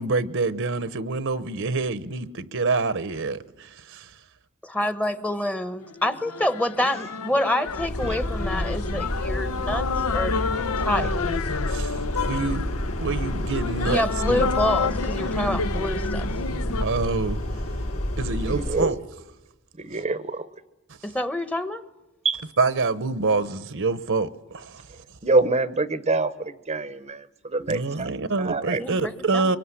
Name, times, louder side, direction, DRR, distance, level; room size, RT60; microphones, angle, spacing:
voice 1, 0.0-4.1 11.7-11.9 12.2-12.7 13.0-14.0 14.3-14.4 16.8-17.4 18.2-19.0 22.6-24.8 27.7-29.6, right 3 dB, 60° right, 1.0 m, -26 dB
voice 2, 4.7-9.8 10.1-10.3 10.8-11.1 13.8-16.3 21.0-21.8 28.8-29.5, left 1 dB, 5° left, 1.1 m, -27 dB
sound 1, 5.8-16.9, left 4 dB, 85° left, 0.9 m, -30 dB
sound 2, 7.7-18.9, left 1 dB, 70° left, 4.8 m, -29 dB
voice 3, 18.5-19.0 19.8-20.6 22.2-22.4 25.2-28.1 28.4-28.8, right 3 dB, 30° right, 0.9 m, -25 dB
25.0 x 23.0 x 9.9 m
head